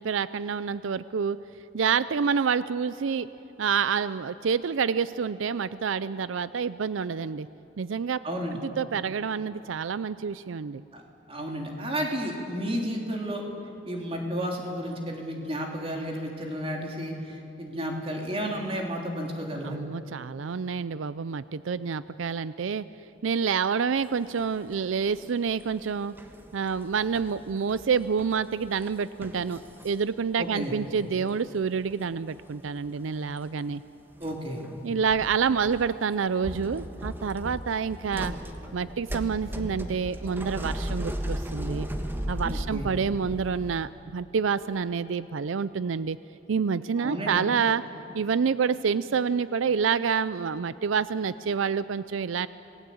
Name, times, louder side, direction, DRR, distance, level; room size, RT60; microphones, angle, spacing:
voice 1, 0.0-1.4 1.7-3.3 3.6-7.5 7.8-8.2 8.6-10.8 19.6-22.9 23.2-26.1 26.5-33.8 34.8-38.3 38.7-41.9 42.3-46.2 46.5-47.8 48.1-52.5, right 6 dB, 90° right, 15 dB, 0.5 m, -28 dB
voice 2, 8.2-8.6 10.9-11.0 11.3-13.4 13.8-19.8 30.4-30.7 34.2-34.6 42.4-42.9 47.0-47.4, equal, 30° right, 1 dB, 3.2 m, -32 dB
sound 1, 24.1-24.8 25.1-30.7 31.0-32.1 32.3-32.6 32.9-33.6 34.1-35.9 36.3-43.9, equal, 10° right, 1.3 m, -37 dB
27.0 x 18.5 x 8.5 m, 2.9 s
head